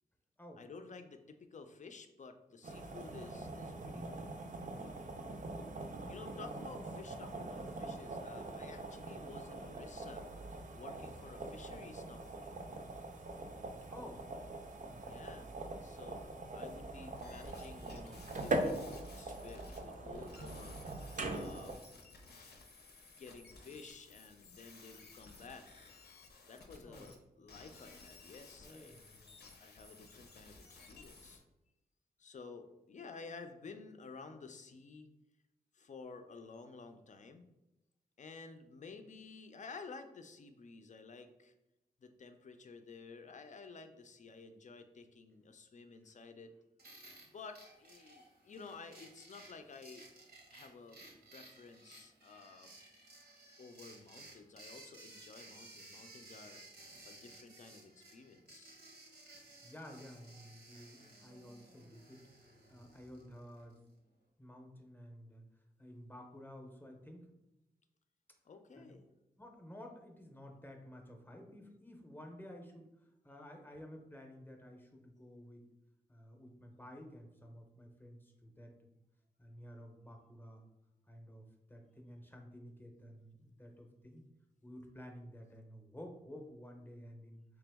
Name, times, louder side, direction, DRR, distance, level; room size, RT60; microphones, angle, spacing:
voice 1, 0.6-4.3 6.1-10.3 10.7-12.6 15.0-15.5 15.8-16.3 16.5-20.8 21.3-21.8 23.2-25.9 26.5-29.0 29.6-31.4 32.2-35.1 35.7-37.4 38.2-41.5 42.0-46.6 47.2-50.1 50.5-51.0 51.3-52.7 53.6-56.6 57.0-58.8 68.4-69.0, left 4 dB, 50° left, 7 dB, 0.5 m, -52 dB
sound 1, 2.6-21.8, right 2 dB, 50° right, 0.5 m, -43 dB
voice 2, 13.9-14.2 14.9-15.5 26.8-27.1 28.6-29.4 59.6-62.2 62.7-63.8 64.4-65.4 65.8-67.3 68.8-69.0 69.4-75.7 76.1-79.0 79.4-80.7 81.1-84.2 84.6-87.4, equal, 10° left, 2 dB, 0.7 m, -53 dB
sound 2, 17.2-27.2 27.5-31.4, left 3 dB, 85° left, 0.7 m, -57 dB
sound 3, 46.8-63.8, right 2 dB, 80° right, 0.9 m, -57 dB
3.4 x 2.9 x 3.4 m, 0.93 s
cardioid pair, 75°, 16 cm